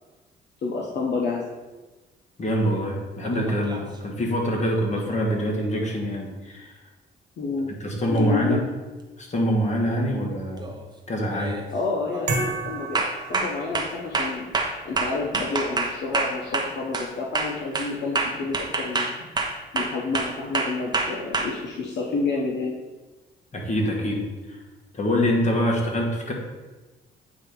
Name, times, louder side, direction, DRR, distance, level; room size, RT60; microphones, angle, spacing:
voice 1, 0.6-1.4 7.4-7.8 8.1-8.7 11.7-14.5 14.8-19.2 19.7-22.7, left 3 dB, 60° left, -2 dB, 1.0 m, -29 dB
voice 2, 2.4-6.8 7.8-8.6 9.2-10.7 11.1-11.6 23.5-24.6 24.9-26.3, equal, 35° left, 0 dB, 1.6 m, -25 dB
sound 1, 3.2-3.9 8.2-8.3 9.8-10.1 10.5-10.9 11.3-11.7 12.1-12.3 12.9-17.1 17.3-21.4, right 3 dB, 20° right, 1.0 m, -27 dB
sound 2, 12.3-14.2, right 3 dB, 55° right, 1.6 m, -31 dB
8.6 x 2.9 x 5.3 m, 1.2 s
cardioid pair, 90°, 20 cm